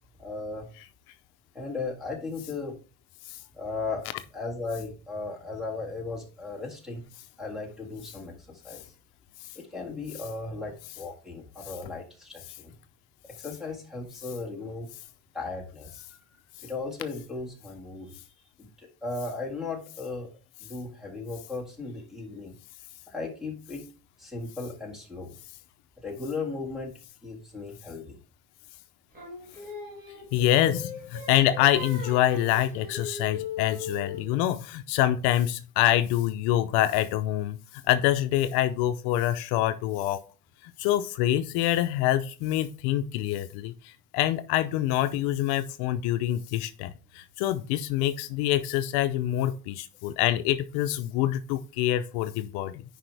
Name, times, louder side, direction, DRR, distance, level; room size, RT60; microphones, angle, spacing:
voice 1, 0.2-0.7 1.5-2.7 3.5-7.0 7.4-8.9 9.6-12.7 13.4-14.9 15.3-16.3 16.6-18.2 18.6-20.3 20.6-22.6 23.1-23.9 24.2-25.4 26.0-26.9 27.2-28.2, left 3 dB, ahead, 1 dB, 1.8 m, -36 dB
Singing, 29.1-34.3, left 4 dB, 20° right, 2.4 m, -38 dB
voice 2, 30.3-37.6 37.9-40.2 40.8-52.8, left 13 dB, 70° left, 10 dB, 0.6 m, -26 dB
10.0 x 4.9 x 3.3 m, 0.36 s
cardioid pair, 170°, 40 cm